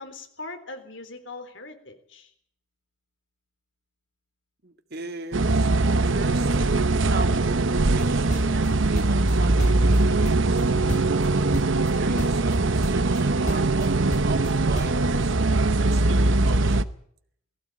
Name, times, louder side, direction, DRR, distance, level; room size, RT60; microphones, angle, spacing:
voice 1, 0.0-2.3, left 3 dB, 70° left, 3.6 m, -40 dB
voice 2, 4.6-10.9 12.0-16.9, right 2 dB, 55° right, 2.1 m, -38 dB
sound 1, 5.3-16.8, right 2 dB, 75° right, 0.9 m, -21 dB
sound 2, 8.0-9.3 9.6-10.6 10.9-11.3 11.5-11.9 12.2-12.6 12.8-13.2 13.5-15.0, left 1 dB, 40° left, 2.1 m, -32 dB
19.5 x 16.0 x 9.0 m
head